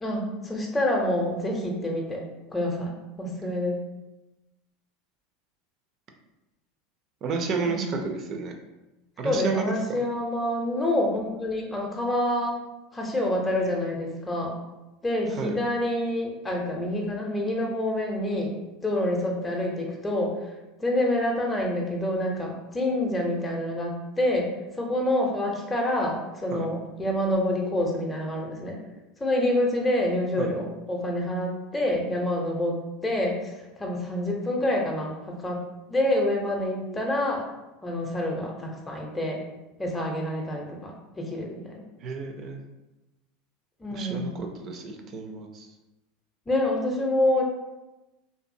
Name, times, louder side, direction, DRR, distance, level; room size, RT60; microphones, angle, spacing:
voice 1, 0.0-2.2 2.5-3.8 7.7-7.9 9.2-12.6 12.9-14.5 15.0-18.6 18.8-20.4 20.8-28.8 29.2-37.5 37.8-39.4 39.8-41.7 43.8-44.3 46.5-47.4, left 1 dB, 15° left, -1 dB, 0.6 m, -27 dB
voice 2, 7.2-8.5 9.2-10.0 15.3-15.6 26.5-26.7 30.4-30.5 42.0-42.6 43.9-45.7, right 4 dB, 45° right, 4 dB, 0.5 m, -31 dB
2.6 x 2.5 x 2.6 m, 1.0 s
hypercardioid pair, 90°, 0 cm